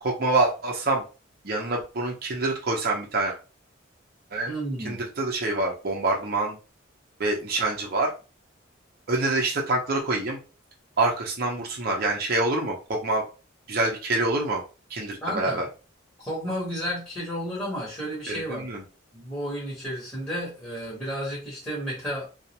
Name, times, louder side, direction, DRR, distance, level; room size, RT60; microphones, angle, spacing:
voice 1, 0.0-1.0 1.4-3.3 4.3-4.5 4.8-6.6 7.2-8.1 9.1-10.4 11.0-13.2 13.7-14.6 14.9-15.6 18.3-18.8, right 2 dB, 50° right, -1 dB, 0.6 m, -26 dB
voice 2, 4.5-5.0 15.2-15.6 16.2-18.7 19.1-22.3, equal, 10° left, -6 dB, 1.0 m, -32 dB
2.4 x 2.0 x 2.8 m, 0.33 s
head